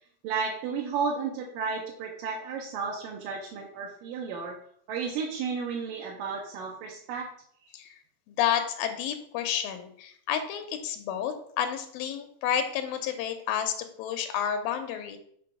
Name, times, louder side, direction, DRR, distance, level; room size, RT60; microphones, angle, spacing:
voice 1, 0.2-4.6 4.9-7.3, right 5 dB, 80° right, -2 dB, 2.4 m, -33 dB
voice 2, 8.3-15.2, left 9 dB, 85° left, 7 dB, 2.4 m, -30 dB
6.0 x 3.3 x 5.8 m, 0.64 s
omnidirectional pair, 4.0 m